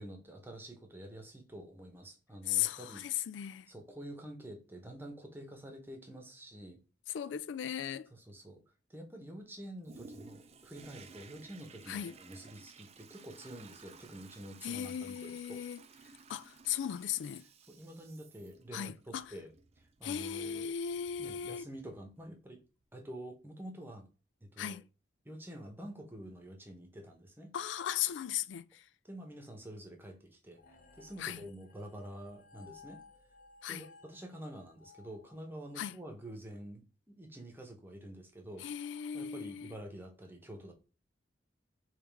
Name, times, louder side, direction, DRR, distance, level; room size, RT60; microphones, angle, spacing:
voice 1, 0.0-3.1 3.7-6.8 8.1-8.6 8.9-15.6 17.7-20.7 21.2-22.6 22.9-24.1 24.4-24.8 25.2-27.5 29.0-30.6 31.0-33.0 33.7-38.7 39.1-40.7, right 1 dB, 10° right, 1.0 m, -48 dB
voice 2, 2.5-3.7 7.1-8.1 11.9-12.2 14.6-15.8 16.3-17.5 18.7-19.3 20.0-21.7 24.6-24.8 27.5-28.8 31.2-31.4 33.6-33.9 35.8-36.0 38.6-39.7, left 10 dB, 80° left, 0.3 m, -37 dB
Toilet flush, 9.8-22.3 22.8-22.9, right 4 dB, 35° right, 0.4 m, -57 dB
sound 1, 30.6-36.0, left 4 dB, 50° left, 0.9 m, -59 dB
3.5 x 3.2 x 4.7 m
head